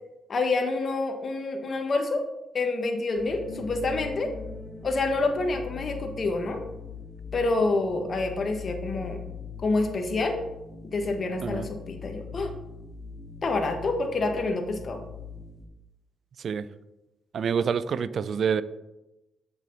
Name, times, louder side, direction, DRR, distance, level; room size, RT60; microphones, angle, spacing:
voice 1, 0.3-2.2 2.5-4.3 4.8-6.6 7.3-9.2 9.6-10.4 10.8-12.5 13.4-15.0, left 3 dB, 45° left, 5 dB, 1.3 m, -27 dB
sound 1, 3.2-15.7, left 5 dB, 25° left, 2.3 m, -41 dB
voice 2, 17.3-18.6, right 7 dB, 60° right, 16 dB, 0.4 m, -27 dB
7.6 x 6.1 x 4.0 m, 0.96 s
cardioid pair, 80°, 0 cm